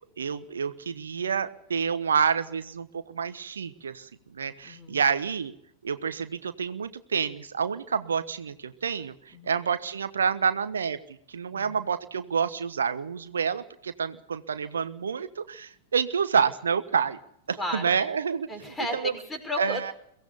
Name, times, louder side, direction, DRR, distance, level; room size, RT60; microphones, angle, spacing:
voice 1, 0.2-5.5 5.8-11.0 11.3-17.2 17.5-18.5 18.9-19.1 19.6-19.9, right 6 dB, 70° right, 11 dB, 1.2 m, -28 dB
voice 2, 4.6-5.0 9.3-9.6 11.5-11.7 17.6-18.0 18.5-19.9, left 1 dB, 10° left, 6 dB, 6.0 m, -34 dB
23.5 x 17.0 x 7.0 m, 0.70 s
figure-of-eight pair, 95°, 0 cm